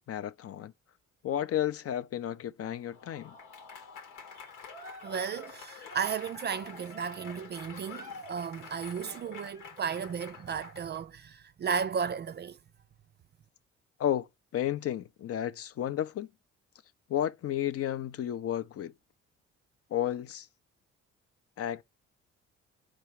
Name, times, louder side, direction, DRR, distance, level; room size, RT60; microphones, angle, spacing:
voice 1, 0.1-0.7 1.2-3.3 14.0-14.3 14.5-16.3 17.1-18.9 19.9-20.5 21.6-21.8, left 11 dB, 45° left, 0.5 m, -32 dB
Applause / Crowd, 2.8-11.0, left 4 dB, 80° left, 1.1 m, -47 dB
voice 2, 5.0-12.6, right 6 dB, 30° right, 0.4 m, -34 dB
4.9 x 4.7 x 4.6 m
hypercardioid pair, 50°, 34 cm